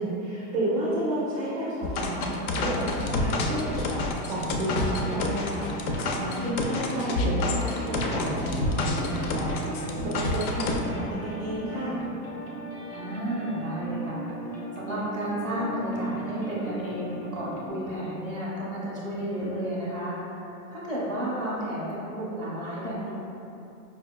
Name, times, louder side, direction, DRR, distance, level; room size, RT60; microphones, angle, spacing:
voice 1, 0.0-4.0 4.3-12.0, right 1 dB, 30° right, -8 dB, 0.3 m, -31 dB
sound 1, 1.8-10.8, left 2 dB, 65° left, 0.5 m, -28 dB
sound 2, 4.6-17.7, right 2 dB, 30° left, 1.0 m, -38 dB
voice 2, 12.9-23.1, equal, 10° left, -9 dB, 0.6 m, -32 dB
5.3 x 2.2 x 2.2 m, 2.7 s
supercardioid pair, 150°, 46 cm